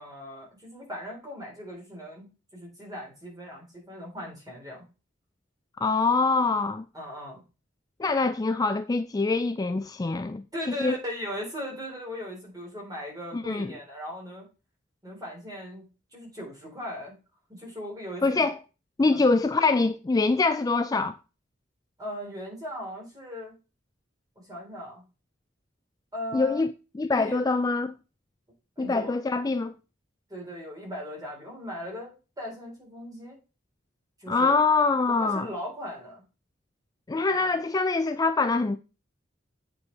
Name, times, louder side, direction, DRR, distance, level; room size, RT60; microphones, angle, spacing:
voice 1, 0.0-4.8 6.9-7.4 10.5-14.5 15.0-15.8 16.1-17.2 17.5-18.4 19.1-19.2 22.0-23.6 24.4-25.0 26.1-26.6 27.1-27.4 28.8-29.2 30.3-33.4 34.2-34.6 35.1-36.2 37.3-37.4, equal, 20° right, 4.2 m, -38 dB
voice 2, 5.8-6.8 8.0-11.0 13.3-13.7 18.2-18.6 19.0-21.2 26.3-27.9 28.8-29.7 34.3-35.5 37.1-38.8, left 3 dB, 20° left, 0.3 m, -24 dB
8.4 x 5.2 x 4.7 m
head